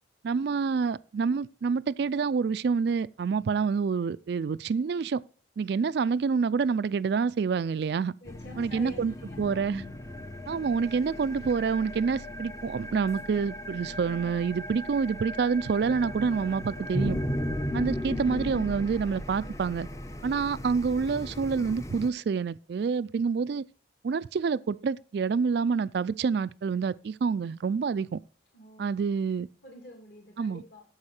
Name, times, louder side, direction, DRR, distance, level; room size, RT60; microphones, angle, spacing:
voice 1, 0.2-5.2 5.6-8.1 8.6-9.8 10.5-17.2 17.7-19.9 20.2-23.6 24.0-28.2 28.8-29.5 30.4-30.6, right 5 dB, 55° right, 0.3 m, -27 dB
voice 2, 8.2-9.7 28.5-28.9 29.6-30.8, left 1 dB, 60° left, 2.8 m, -47 dB
sound 1, 8.2-22.1, equal, 15° left, 0.6 m, -36 dB
9.7 x 7.3 x 4.3 m
head